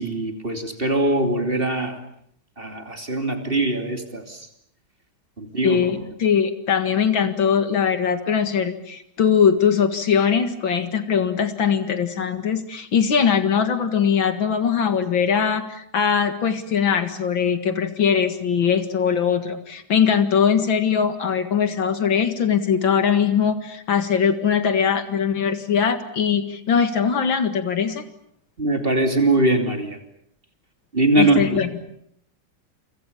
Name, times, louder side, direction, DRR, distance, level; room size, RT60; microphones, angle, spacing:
voice 1, 0.0-2.0 2.6-4.4 5.4-5.8 28.6-30.0 30.9-31.5, right 2 dB, 25° right, 5 dB, 3.1 m, -21 dB
voice 2, 5.6-28.0 31.2-31.8, left 7 dB, 70° left, 9 dB, 2.6 m, -21 dB
29.0 x 25.0 x 7.1 m, 0.70 s
omnidirectional pair, 2.2 m